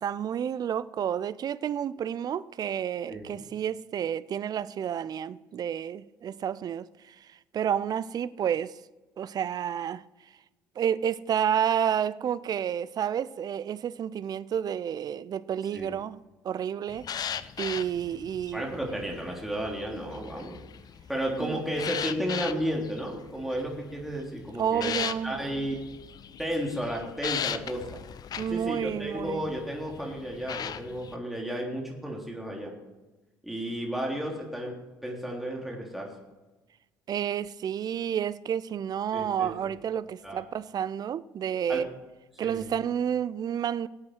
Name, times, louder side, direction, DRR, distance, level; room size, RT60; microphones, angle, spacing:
voice 1, 0.0-7.1 7.5-8.7 9.2-10.0 10.8-16.2 16.4-17.0 17.6-18.7 21.3-21.6 24.6-25.4 28.4-29.5 37.1-41.8 42.4-43.9, right 9 dB, 45° right, 0.5 m, -30 dB
voice 2, 3.1-3.4 15.7-15.9 18.5-20.6 21.1-25.8 26.4-28.0 28.5-32.7 33.4-34.7 35.0-36.1 39.1-39.7 40.2-40.4 41.7-41.9 42.4-42.7, equal, ahead, 3.2 m, -33 dB
sound 1, 16.9-31.2, left 8 dB, 45° left, 0.7 m, -38 dB
17.5 x 8.5 x 4.6 m
hypercardioid pair, 60°, 9 cm